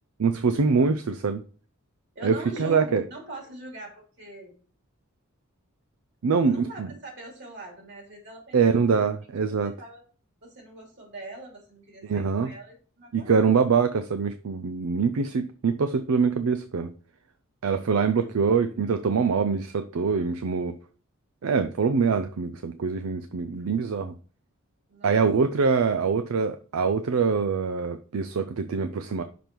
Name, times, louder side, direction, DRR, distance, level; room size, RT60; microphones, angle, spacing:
voice 1, 0.2-1.4 2.2-3.0 6.2-6.9 8.5-9.7 12.0-12.5 13.1-16.9 17.6-20.8 21.4-24.1 25.0-29.2, right 5 dB, 75° right, 0.5 m, -24 dB
voice 2, 2.1-4.5 6.5-9.0 9.5-10.0 10.4-13.6 18.1-18.5 24.9-25.2, right 2 dB, 55° right, 3.2 m, -42 dB
5.9 x 5.2 x 4.5 m
head